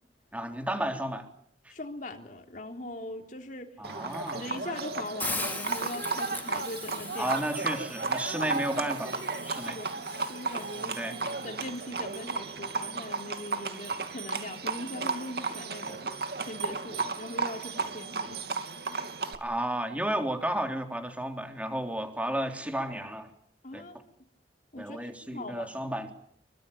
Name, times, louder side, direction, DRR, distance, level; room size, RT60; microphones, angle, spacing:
voice 1, 0.3-1.3 3.8-4.4 7.2-9.8 11.0-11.2 19.4-23.3 23.7-23.8 24.8-26.1, right 1 dB, 10° right, 5 dB, 3.6 m, -32 dB
voice 2, 1.7-3.7 4.3-7.4 9.5-9.9 10.3-11.0 11.4-16.1 16.4-18.4 23.6-24.1 24.7-25.9, left 1 dB, 45° left, 4 dB, 3.4 m, -40 dB
Livestock farm animals working animals, 3.8-19.3, right 4 dB, 60° right, 2.8 m, -34 dB
Hiss, 5.2-11.3, left 3 dB, 10° left, 2.9 m, -41 dB
26.5 x 24.0 x 8.7 m, 0.65 s
head